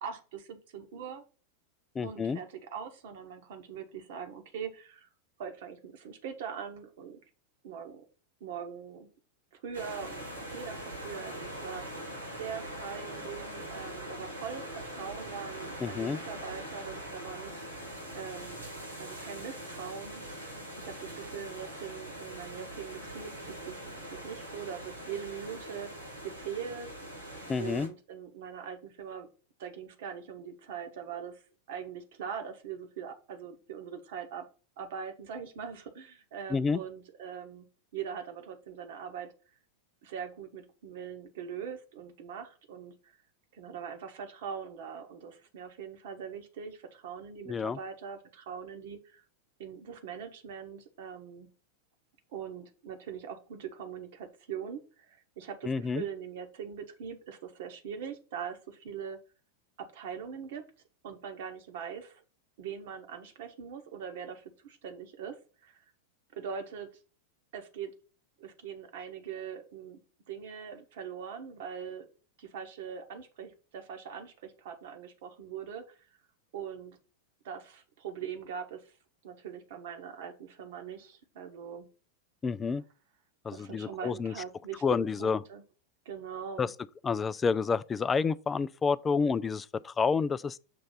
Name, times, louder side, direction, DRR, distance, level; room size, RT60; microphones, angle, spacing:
voice 1, 0.0-1.2 2.0-5.1 5.4-7.2 7.6-8.0 8.4-9.1 9.6-10.2 10.5-12.0 12.3-17.6 18.1-18.6 19.0-20.2 20.8-25.9 26.2-26.9 27.6-29.3 29.6-31.4 31.7-34.5 34.8-37.7 37.9-39.3 40.0-43.2 43.5-49.2 49.6-51.5 52.3-59.2 59.8-60.7 61.0-62.2 62.6-65.8 66.3-66.9 67.5-67.9 68.4-70.0 70.3-72.1 72.4-76.1 76.5-77.0 77.4-78.9 79.2-81.9 83.5-85.6 86.0-86.7, right 7 dB, 55° right, 1.3 m, -42 dB
voice 2, 2.0-2.4 15.8-16.2 27.5-27.9 36.5-36.8 47.5-47.8 55.6-56.0 82.4-82.8 83.4-84.3 84.8-85.4 86.6-86.7 87.0-90.6, left 5 dB, 20° left, 0.3 m, -29 dB
sound 1, 9.7-27.9, right 1 dB, 85° right, 2.8 m, -42 dB
6.8 x 3.2 x 5.5 m
figure-of-eight pair, 90°, 0 cm